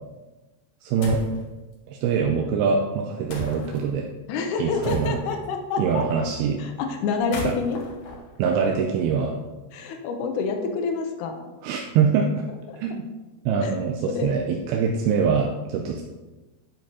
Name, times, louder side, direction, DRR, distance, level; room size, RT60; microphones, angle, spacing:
voice 1, 0.8-1.2 1.9-4.1 4.6-5.2 5.8-6.6 7.4-7.5 8.4-9.4 11.6-12.3 12.8-13.1 13.5-16.0, right 6 dB, 85° right, 1 dB, 2.5 m, -24 dB
sound 1, 1.0-1.4 3.3-3.8 4.8-5.5 7.1-9.1, left 1 dB, 65° left, 2.1 m, -35 dB
voice 2, 4.3-6.0 6.6-7.8 9.7-11.5 12.7-12.8 13.6-13.8 14.0-14.3, left 4 dB, 85° left, 4 dB, 1.7 m, -28 dB
8.9 x 6.0 x 2.8 m, 1.2 s
omnidirectional pair, 4.4 m